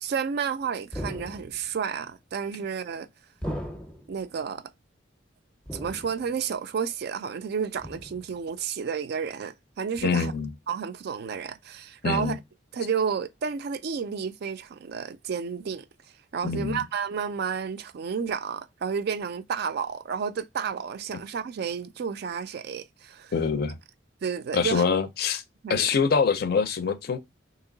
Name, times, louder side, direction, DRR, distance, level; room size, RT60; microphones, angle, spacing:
voice 1, 0.0-3.1 4.1-4.7 5.7-10.3 10.7-12.4 12.7-15.8 16.3-23.3 24.2-24.9 25.6-25.9, right 6 dB, 55° right, 0.4 m, -31 dB
sound 1, 0.9-1.7 3.4-4.2 5.7-6.4 7.8-8.4 10.0-10.1, equal, 5° left, 0.6 m, -37 dB
voice 2, 10.0-10.5 12.0-12.4 16.4-16.8 23.3-23.8 24.5-25.4 25.7-27.2, left 5 dB, 55° left, 0.5 m, -24 dB
3.0 x 2.9 x 3.8 m
head